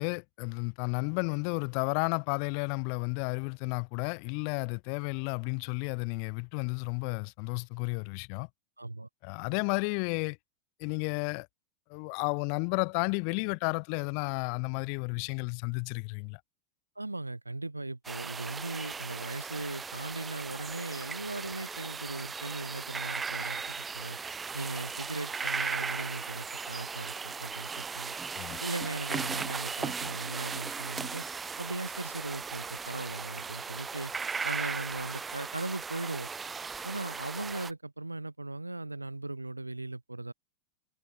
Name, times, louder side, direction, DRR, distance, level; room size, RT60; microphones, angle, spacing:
voice 1, 0.0-8.5 9.2-10.4 10.8-11.5 11.9-16.4 28.3-28.6, left 40 dB or more, 45° left, 0.5 m, -32 dB
voice 2, 8.8-9.1 17.0-24.2 24.5-28.2 28.6-31.2 31.6-34.1 34.4-36.3 36.8-40.3, right 2 dB, 85° right, 0.9 m, -38 dB
sound 1, 18.0-37.7, right 5 dB, 15° right, 0.8 m, -37 dB
figure-of-eight pair, 90°, 0 cm